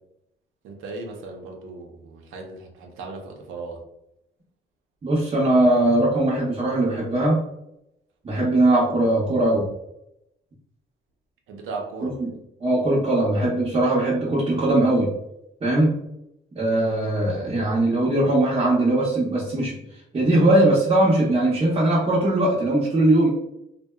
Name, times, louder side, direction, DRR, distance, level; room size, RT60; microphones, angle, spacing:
voice 1, 0.6-3.8 11.5-12.2, right 3 dB, 85° right, 1 dB, 0.6 m, -36 dB
voice 2, 5.0-7.4 8.2-9.7 12.0-12.1 12.6-15.1 15.6-15.9 16.6-19.8 20.1-23.3, right 1 dB, 30° right, -7 dB, 0.7 m, -20 dB
2.6 x 2.1 x 2.2 m, 0.82 s
cardioid pair, 90°, 20 cm